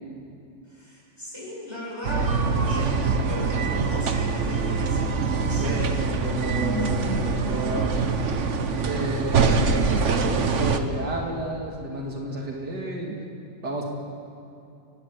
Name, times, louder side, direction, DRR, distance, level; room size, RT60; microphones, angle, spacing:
voice 1, 0.6-6.0, equal, 15° left, -5 dB, 7.2 m, -37 dB
sound 1, 2.0-10.8, right 4 dB, 45° right, 1.3 m, -24 dB
sound 2, 3.8-11.6, left 1 dB, 10° right, 3.4 m, -39 dB
voice 2, 5.6-8.0 8.8-13.2 13.6-13.8, right 1 dB, 70° right, -1 dB, 2.9 m, -31 dB
30.0 x 13.0 x 8.2 m, 2.6 s
omnidirectional pair, 1.9 m